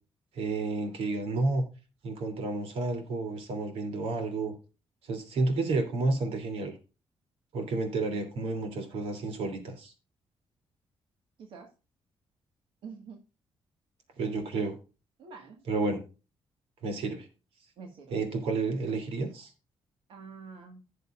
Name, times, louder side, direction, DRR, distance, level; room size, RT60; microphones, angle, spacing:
voice 1, 0.3-1.6 2.0-4.5 5.0-6.7 7.5-9.9 14.2-14.8 15.7-16.0 16.8-17.3 18.1-19.5, right 3 dB, 85° right, 7 dB, 3.0 m, -31 dB
voice 2, 12.8-13.2 15.2-15.6 17.8-18.2 20.1-20.8, right 5 dB, 65° right, 3 dB, 1.7 m, -46 dB
16.5 x 6.7 x 2.5 m, 0.32 s
cardioid pair, 170°, 10 cm